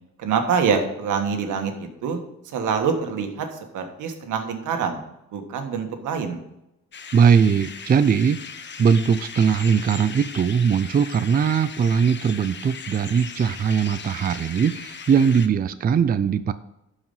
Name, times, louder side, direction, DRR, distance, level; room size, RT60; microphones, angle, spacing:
voice 1, 0.2-2.2 2.4-5.0 5.3-6.4, right 6 dB, 80° right, 5 dB, 1.5 m, -25 dB
sound 1, 6.9-15.5, left 6 dB, 40° left, 0.9 m, -38 dB
voice 2, 7.1-8.4 8.8-16.5, right 7 dB, 30° right, 12 dB, 0.4 m, -20 dB
11.5 x 5.0 x 5.5 m, 0.86 s
cardioid pair, 90°, 30 cm